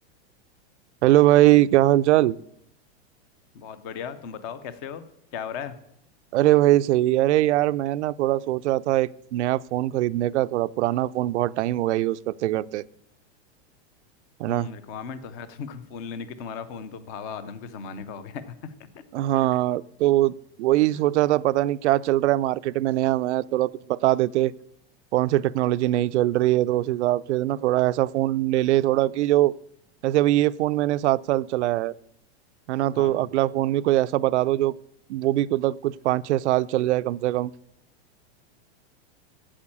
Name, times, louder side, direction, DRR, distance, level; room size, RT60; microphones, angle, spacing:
voice 1, 1.0-2.3 6.3-12.8 14.4-14.7 19.1-24.5 25.1-29.5 30.0-31.9 32.7-34.7 35.1-37.5, right 15 dB, 90° right, 15 dB, 0.5 m, -22 dB
voice 2, 3.5-5.0 5.3-5.7 14.5-19.0 20.9-21.1 32.9-33.2, left 6 dB, 15° left, 13 dB, 0.3 m, -37 dB
8.7 x 7.6 x 8.5 m, 0.75 s
supercardioid pair, 170°, 34 cm